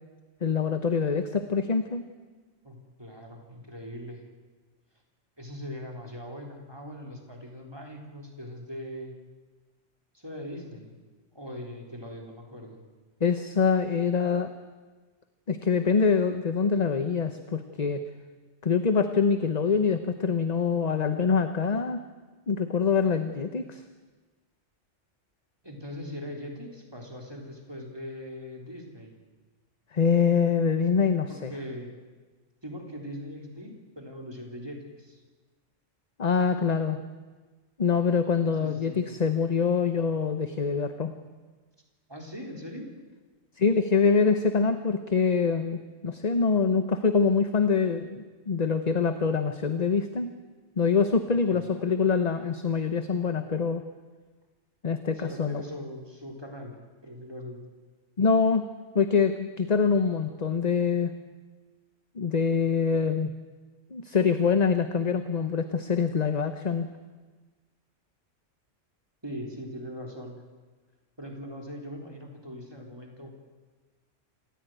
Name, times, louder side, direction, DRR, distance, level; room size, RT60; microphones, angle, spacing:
voice 1, 0.4-2.0 13.2-14.5 15.5-18.0 18.6-22.0 22.5-23.8 29.9-31.5 36.2-37.0 37.8-41.1 43.6-50.3 50.8-53.8 54.8-55.6 58.2-58.7 58.9-61.1 62.2-63.3 63.9-66.9, left 5 dB, 35° left, 9 dB, 1.0 m, -25 dB
voice 2, 2.6-4.2 5.4-9.1 10.1-11.0 11.3-12.8 25.6-29.2 31.3-31.9 32.6-35.2 38.6-39.0 42.1-42.9 51.5-51.9 55.1-56.8 57.0-57.6 69.2-70.4 71.2-73.4, equal, 20° right, 1 dB, 3.8 m, -40 dB
27.0 x 15.0 x 9.2 m, 1.3 s
omnidirectional pair, 1.3 m